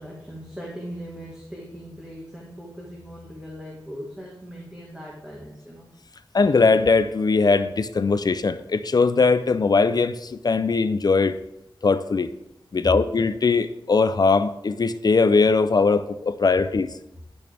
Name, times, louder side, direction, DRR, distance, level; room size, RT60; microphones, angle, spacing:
voice 1, 0.0-5.9, equal, 10° right, -4 dB, 1.6 m, -39 dB
voice 2, 6.3-11.4 11.8-12.3 12.7-16.9, left 4 dB, 50° left, 12 dB, 0.5 m, -20 dB
10.5 x 6.2 x 3.4 m, 0.83 s
wide cardioid pair, 90°, 9 cm